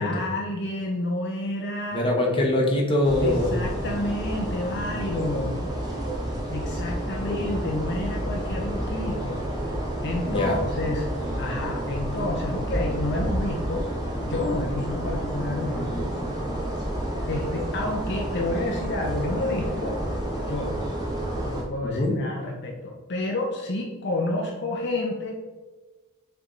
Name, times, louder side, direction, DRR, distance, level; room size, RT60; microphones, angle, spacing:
voice 1, 0.0-2.1 3.2-5.7 6.5-9.5 10.0-11.0 11.4-13.9 14.2-16.1 17.3-20.0 20.5-20.8 21.4-25.4, left 2 dB, 50° left, 0 dB, 0.7 m, -29 dB
voice 2, 1.9-3.6 7.3-7.6 10.2-10.6 21.8-22.2, left 1 dB, 25° left, 0 dB, 1.1 m, -24 dB
sound 1, 3.0-21.6, right 1 dB, 20° right, 1.3 m, -30 dB
7.2 x 3.4 x 3.9 m, 1.3 s
head